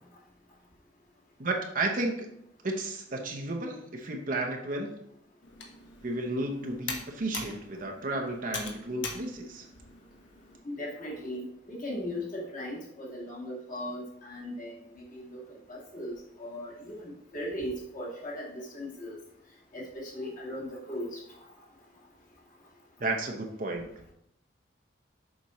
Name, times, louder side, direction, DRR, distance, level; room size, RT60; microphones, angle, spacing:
voice 1, 1.4-2.3 2.6-4.9 6.0-9.7 23.0-23.9, right 2 dB, 50° right, 2 dB, 0.8 m, -32 dB
Computer keyboard, 5.4-10.6, left 4 dB, 80° left, 1.2 m, -42 dB
voice 2, 10.6-19.1 19.7-21.2, left 1 dB, 45° left, -5 dB, 2.2 m, -38 dB
7.2 x 5.2 x 3.1 m, 0.76 s
head